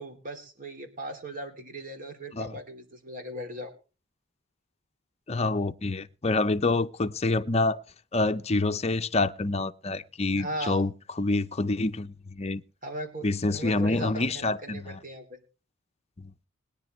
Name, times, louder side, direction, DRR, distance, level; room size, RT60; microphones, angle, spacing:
voice 1, 0.0-3.7 10.3-10.8 12.8-15.4, right 1 dB, 40° right, 2.9 m, -38 dB
voice 2, 5.3-7.8 8.1-10.9 11.2-12.6 13.2-15.0 16.2-16.3, left 2 dB, 30° left, 0.7 m, -27 dB
21.0 x 10.5 x 3.1 m
head